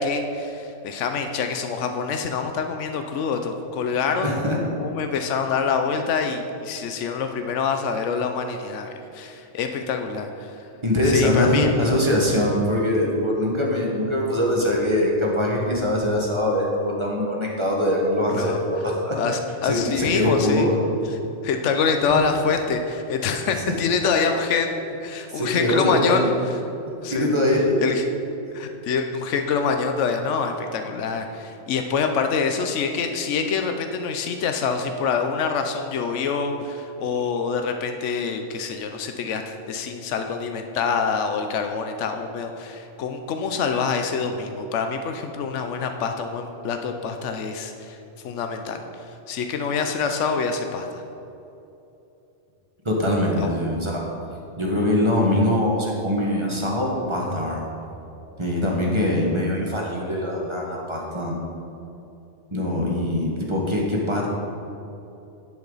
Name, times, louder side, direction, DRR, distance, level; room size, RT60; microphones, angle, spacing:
voice 1, 0.0-4.4 4.8-10.5 11.0-12.0 18.3-18.6 19.2-20.7 21.4-26.3 27.0-27.3 27.8-28.0 28.5-48.0 48.2-48.8 49.3-51.0 53.4-53.6, left 5 dB, 80° left, 6 dB, 1.0 m, -26 dB
voice 2, 4.2-4.6 10.8-19.2 19.6-20.7 21.8-22.2 25.3-26.3 27.1-27.8 28.4-28.5 52.8-54.0 54.6-57.6 58.4-61.3 62.5-64.3, left 1 dB, 25° right, -2 dB, 1.5 m, -22 dB
10.5 x 8.6 x 4.0 m, 2.9 s
omnidirectional pair, 1.2 m